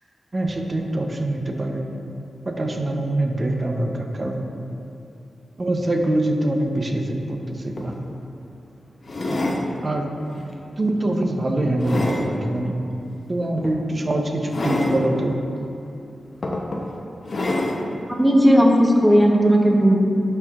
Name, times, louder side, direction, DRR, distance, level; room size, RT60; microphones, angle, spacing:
voice 1, 0.3-1.9 2.5-4.4 5.6-8.0 9.8-10.1 10.8-12.8 13.3-15.4, right 1 dB, 40° right, 3 dB, 0.7 m, -24 dB
sound 1, 7.4-7.5 7.8-8.0 9.0-9.6 10.3-10.5 11.1-12.3 13.6-13.8 14.5-15.0 15.9-16.0 16.4-16.8 17.3-17.8 18.6-18.7, left 1 dB, 55° left, 0.7 m, -26 dB
voice 2, 18.1-20.0, equal, 5° right, 0 dB, 0.9 m, -15 dB
10.5 x 4.5 x 2.4 m, 2.7 s
cardioid pair, 65°, 0 cm